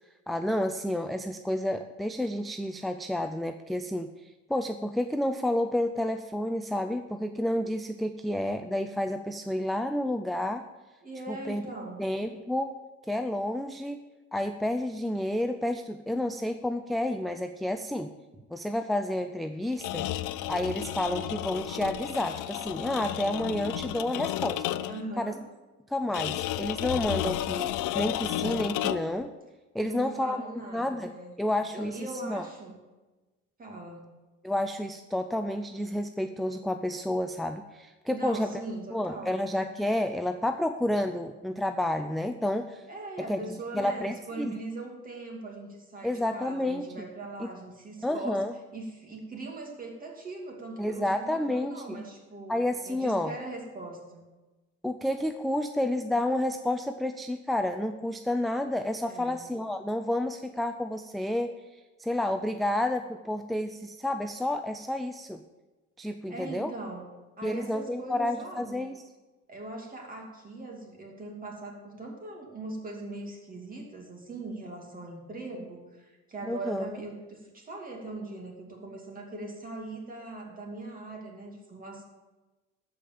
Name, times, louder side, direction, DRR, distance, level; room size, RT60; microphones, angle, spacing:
voice 1, 0.3-10.6 11.3-11.6 12.0-12.7 13.1-14.0 14.3-18.1 18.5-20.1 20.5-24.6 25.2-25.3 25.9-29.3 29.7-31.1 31.4-32.4 34.4-38.5 38.9-42.9 43.3-43.4 43.7-44.5 46.0-46.9 47.4-47.5 48.0-48.5 50.8-52.0 52.5-53.3 54.8-65.4 66.0-66.7 67.4-69.0 76.5-76.9, left 1 dB, ahead, 7 dB, 0.3 m, -30 dB
voice 2, 11.0-12.1 24.8-25.4 29.8-31.3 31.7-32.8 33.6-34.1 38.1-39.4 42.9-54.2 59.1-59.4 66.3-67.1 67.4-68.9 69.5-82.0, right 2 dB, 30° right, 0 dB, 2.6 m, -40 dB
sound 1, 19.7-25.1 26.1-29.2, left 14 dB, 80° left, 0.6 m, -32 dB
13.5 x 5.1 x 7.6 m, 1.2 s
cardioid pair, 125°, 31 cm